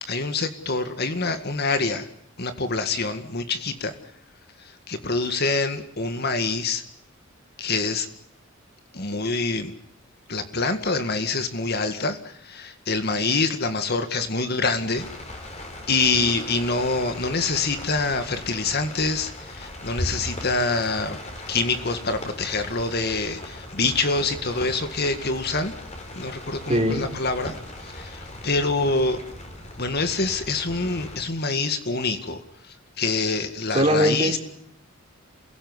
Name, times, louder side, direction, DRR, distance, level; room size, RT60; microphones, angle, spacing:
voice 1, 0.0-2.1 2.4-3.9 4.6-6.8 7.6-8.1 8.9-9.7 10.3-15.1 15.9-21.2 21.5-25.7 26.2-27.5 27.8-29.2 29.8-32.4 33.0-34.4, left 3 dB, 50° left, 8 dB, 2.0 m, -26 dB
sound 1, 14.9-31.2, left 1 dB, 35° left, 5.3 m, -38 dB
voice 2, 26.7-27.1 33.7-34.4, equal, 30° right, 5 dB, 3.9 m, -21 dB
28.5 x 17.0 x 9.7 m, 0.67 s
head